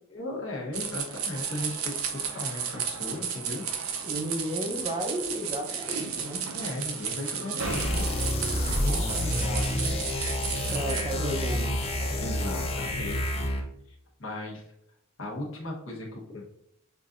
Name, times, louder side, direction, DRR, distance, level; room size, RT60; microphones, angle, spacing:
voice 1, 0.1-3.6 6.5-8.1 8.8-10.0 10.2-10.7 12.2-13.3 14.2-14.6 15.2-16.5, left 1 dB, 65° left, -2 dB, 1.2 m, -37 dB
sound 1, 0.7-11.0, right 7 dB, 75° right, 0.6 m, -33 dB
voice 2, 4.0-6.4 10.7-11.8, right 1 dB, 25° right, 2 dB, 0.6 m, -33 dB
sound 2, 7.6-13.7, left 1 dB, 30° left, 0.6 m, -29 dB
5.8 x 2.6 x 2.5 m, 0.76 s
head